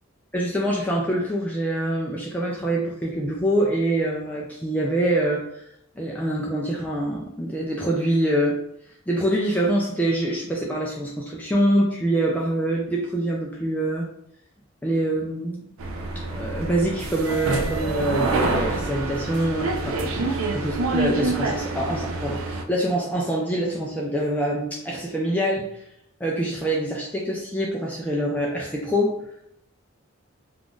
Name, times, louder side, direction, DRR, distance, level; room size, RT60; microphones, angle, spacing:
voice 1, 0.3-5.6 6.0-8.6 9.1-14.1 14.8-15.7 16.3-25.7 26.2-29.2, right 1 dB, 5° left, -3 dB, 0.3 m, -25 dB
sound 1, 15.8-22.6, right 3 dB, 75° right, 0.4 m, -26 dB
2.5 x 2.4 x 3.6 m, 0.72 s
head